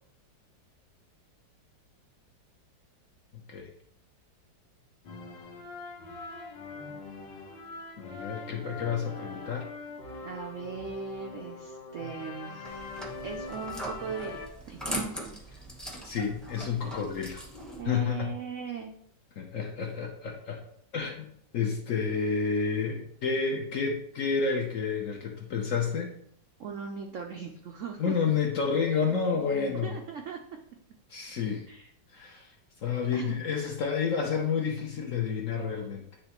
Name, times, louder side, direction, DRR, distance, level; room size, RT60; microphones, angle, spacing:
sound 1, 5.0-14.5, left 3 dB, 75° left, 1.6 m, -42 dB
voice 1, 8.0-9.7 16.0-17.4 17.8-18.3 19.4-20.6 20.9-26.1 28.0-30.0 31.1-31.7 32.1-32.5 32.8-36.0, left 5 dB, 60° left, 2 dB, 0.9 m, -30 dB
voice 2, 10.0-12.9 13.2-14.4 14.7-15.1 15.5-15.6 17.8-18.9 26.6-28.1 29.8-30.4 31.7-31.9 33.1-33.4, right 6 dB, 80° right, 2 dB, 0.6 m, -39 dB
sound 2, 12.6-17.8, right 1 dB, ahead, 0.4 m, -39 dB
9.7 x 3.3 x 2.9 m, 0.69 s
omnidirectional pair, 2.0 m